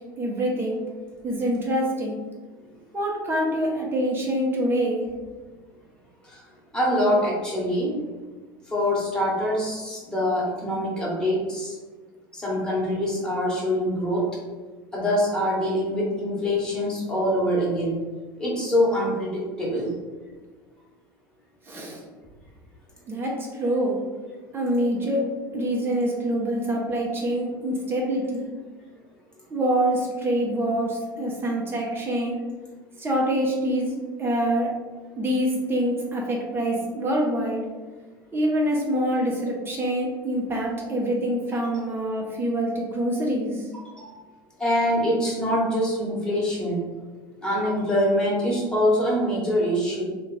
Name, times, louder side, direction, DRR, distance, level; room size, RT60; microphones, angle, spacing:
voice 1, 0.2-0.7 1.2-2.2 2.9-5.0 21.7-22.0 23.1-24.0 24.5-25.2 25.5-28.4 29.5-32.4 33.0-34.7 35.2-37.6 38.3-43.5, right 1 dB, 20° right, -3 dB, 0.8 m, -25 dB
voice 2, 6.7-7.9 8.7-11.7 12.3-14.2 14.9-17.9 18.4-19.9 44.0-44.2 44.6-46.8 47.4-50.0, equal, 5° left, -6 dB, 1.4 m, -24 dB
3.3 x 2.4 x 3.3 m, 1.3 s
figure-of-eight pair, 75°, 12 cm